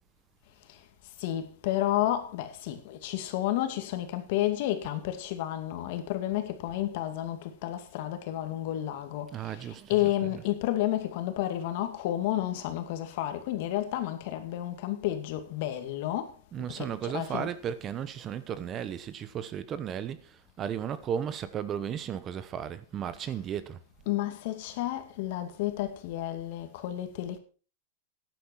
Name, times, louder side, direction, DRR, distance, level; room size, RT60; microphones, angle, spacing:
voice 1, 1.2-16.3 16.8-17.5 24.1-27.4, left 13 dB, 60° left, 2.3 m, -31 dB
voice 2, 9.3-10.5 16.5-20.2 20.6-23.8, right 8 dB, 30° right, 1.0 m, -35 dB
13.0 x 10.5 x 4.7 m
supercardioid pair, 140°, 0 cm